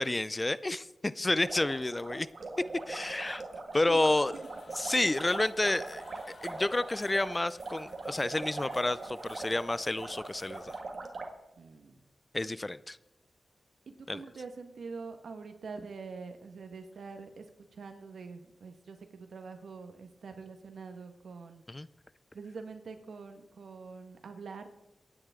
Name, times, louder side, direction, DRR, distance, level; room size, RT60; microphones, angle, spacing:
voice 1, 0.0-2.3 2.9-3.4 3.7-4.3 4.8-6.0 6.4-10.8 12.3-13.0 14.1-14.2 21.7-21.9, left 2 dB, 25° left, 17 dB, 0.5 m, -30 dB
sound 1, 1.4-11.3, right 3 dB, 60° right, 1.9 m, -41 dB
sound 2, 4.3-10.8, left 3 dB, 60° left, 1.7 m, -57 dB
voice 2, 11.6-12.0 13.9-17.4 17.7-21.6 22.3-24.7, right 4 dB, 80° right, 7 dB, 1.5 m, -45 dB
24.5 x 9.8 x 3.7 m, 0.93 s
cardioid pair, 70°, 0 cm